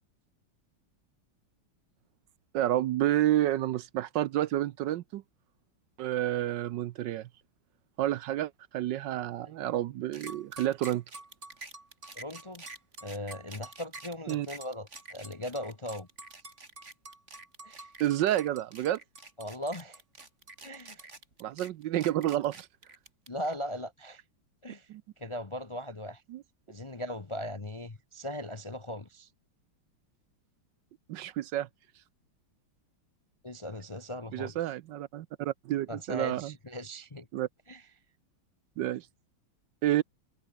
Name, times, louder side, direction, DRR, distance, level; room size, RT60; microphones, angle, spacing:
voice 1, 2.5-5.2 6.0-7.3 8.0-11.0 14.3-14.5 18.0-19.0 21.4-22.7 24.9-25.0 26.3-26.4 31.1-31.7 34.3-36.5 37.3-37.5 38.8-39.1 39.8-40.0, right 13 dB, 70° right, 1.2 m, -29 dB
sound 1, 10.1-23.5, right 3 dB, 35° right, 3.7 m, -47 dB
voice 2, 12.1-12.6 13.0-16.1 17.6-17.9 19.4-20.0 20.6-21.1 23.3-24.2 24.6-24.9 25.2-26.2 26.7-29.3 33.4-34.6 35.9-37.3 37.7-37.9, equal, 25° left, 0.6 m, -39 dB
omnidirectional pair, 2.2 m